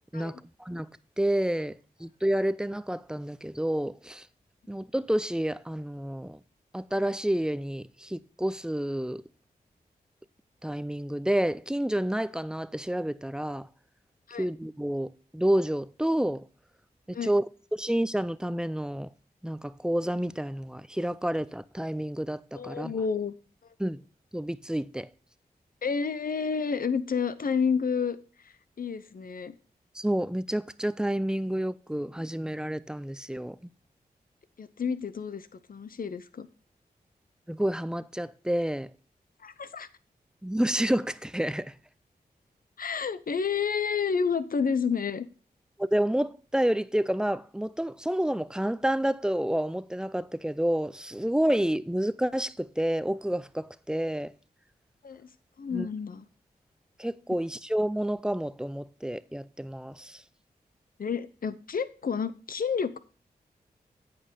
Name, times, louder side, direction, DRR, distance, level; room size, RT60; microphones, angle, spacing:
voice 1, 0.1-0.9 1.2-4.3 4.7-6.4 6.7-9.2 10.6-13.7 14.4-16.4 17.1-17.4 17.7-19.1 19.4-22.9 23.8-24.0 24.3-25.1 29.9-33.6 37.5-38.9 40.4-41.7 45.8-54.3 55.7-55.9 57.0-60.2, right 1 dB, 5° right, 0.5 m, -29 dB
voice 2, 22.5-23.3 25.8-28.2 28.4-29.5 34.6-36.5 39.4-39.9 42.8-45.3 55.0-55.3 55.6-56.3 61.0-63.0, left 6 dB, 60° left, 0.7 m, -30 dB
8.7 x 5.3 x 5.5 m
cardioid pair, 45°, 16 cm